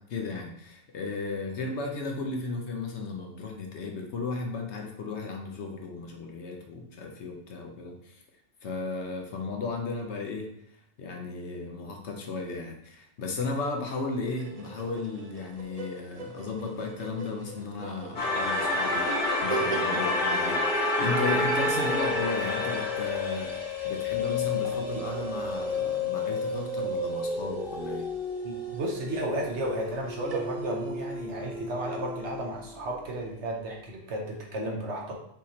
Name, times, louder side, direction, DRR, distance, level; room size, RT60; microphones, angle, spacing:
voice 1, 0.0-8.2 8.6-10.5 11.0-28.1, left 3 dB, 65° left, 2 dB, 0.9 m, -35 dB
sound 1, 14.3-31.1, right 5 dB, 80° right, 0.3 m, -42 dB
sound 2, 18.1-25.0, left 2 dB, 40° left, 1.1 m, -29 dB
sound 3, 20.3-33.1, left 2 dB, 5° left, 0.3 m, -33 dB
voice 2, 28.4-35.2, right 1 dB, 60° right, 0 dB, 1.1 m, -33 dB
5.7 x 3.1 x 2.8 m, 0.71 s
omnidirectional pair, 1.4 m